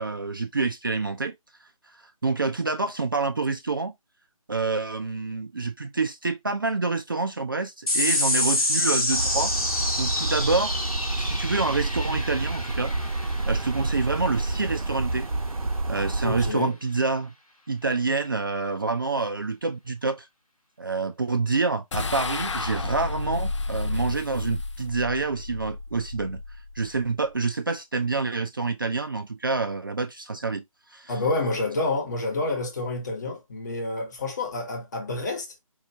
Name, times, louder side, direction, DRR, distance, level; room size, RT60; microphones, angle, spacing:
voice 1, 0.0-1.3 2.0-3.9 4.5-9.5 10.0-10.9 11.2-12.9 13.5-15.3 15.9-17.3 17.7-20.3 20.8-26.4 26.8-30.6 30.9-31.1, right 3 dB, 40° right, 0.4 m, -27 dB
sound 1, 7.9-14.7, left 1 dB, 85° left, 1.4 m, -28 dB
sound 2, 9.1-16.5, right 2 dB, 75° right, 0.7 m, -29 dB
voice 2, 16.2-16.7 31.1-35.6, left 2 dB, 30° left, 1.1 m, -28 dB
sound 3, 21.9-27.3, left 3 dB, 55° left, 0.5 m, -32 dB
4.6 x 2.6 x 2.8 m
figure-of-eight pair, 155°, 18 cm